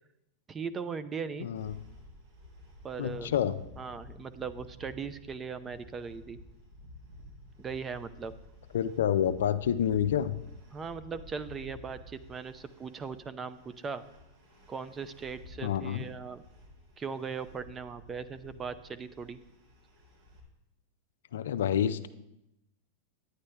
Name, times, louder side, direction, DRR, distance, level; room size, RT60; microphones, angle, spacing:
voice 1, 0.5-1.5 2.8-3.3 3.8-6.4 7.6-8.3 10.7-14.0 14.7-16.4 17.0-19.4, right 5 dB, 25° right, 14 dB, 0.6 m, -39 dB
voice 2, 1.4-1.8 3.0-3.6 8.7-10.4 15.6-16.1 21.3-22.1, left 9 dB, 75° left, 13 dB, 0.4 m, -28 dB
sound 1, 1.5-20.4, left 1 dB, 70° right, 3.4 m, -52 dB
10.5 x 9.5 x 3.4 m, 0.89 s
hypercardioid pair, 105°, 0 cm